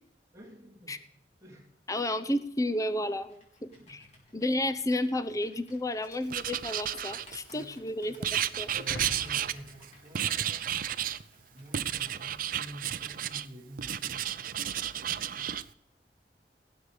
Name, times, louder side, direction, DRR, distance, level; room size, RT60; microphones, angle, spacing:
voice 1, 0.3-1.0 1.4-1.7 3.6-4.0 7.5-8.3 8.7-10.7 11.5-15.6, right 1 dB, 20° right, -5 dB, 3.3 m, -49 dB
voice 2, 1.9-4.1 4.3-8.7, left 1 dB, 20° left, 11 dB, 0.8 m, -32 dB
Computer keyboard, 3.2-12.2, left 1 dB, 40° left, 4.1 m, -59 dB
Writing, 6.3-7.6 8.2-9.8 10.1-11.2 11.7-13.5 13.8-15.6, right 10 dB, 55° right, 0.5 m, -32 dB
sound 1, 8.7-11.3, left 1 dB, 75° left, 1.7 m, -44 dB
18.0 x 8.0 x 5.0 m, 0.71 s
head